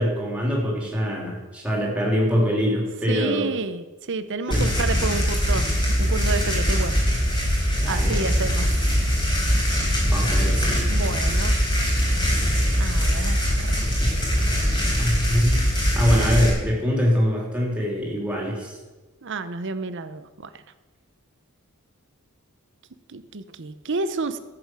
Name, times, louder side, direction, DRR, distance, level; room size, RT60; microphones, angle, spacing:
voice 1, 0.0-3.5 4.5-4.7 7.8-8.2 10.0-11.0 13.0-13.2 13.8-14.1 14.8-15.6 15.9-18.8, equal, 5° right, -3 dB, 3.3 m, -24 dB
voice 2, 3.1-7.0 7.3-7.6 7.9-8.9 10.9-11.5 12.8-13.8 19.2-20.6 23.1-24.4, right 3 dB, 55° right, 12 dB, 0.8 m, -30 dB
sound 1, 4.5-16.5, equal, 20° left, 3.8 m, -22 dB
14.0 x 8.0 x 6.2 m, 1.2 s
head